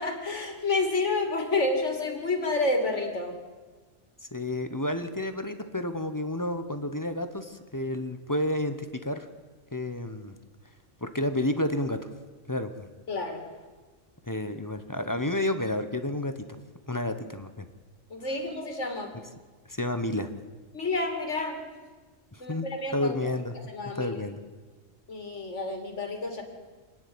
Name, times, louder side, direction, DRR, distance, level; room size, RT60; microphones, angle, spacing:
voice 1, 0.0-3.4 13.1-13.4 18.1-19.2 20.7-21.6 22.4-23.1 23.7-24.2 25.1-26.4, left 2 dB, 60° left, 4 dB, 3.0 m, -29 dB
voice 2, 4.3-9.3 9.7-10.4 11.0-12.0 12.5-12.9 14.3-16.5 16.9-17.7 19.7-20.3 22.3-22.7 22.9-23.5 23.9-24.4, left 1 dB, 15° left, 9 dB, 0.9 m, -30 dB
26.5 x 10.0 x 9.5 m, 1.4 s
omnidirectional pair, 1.4 m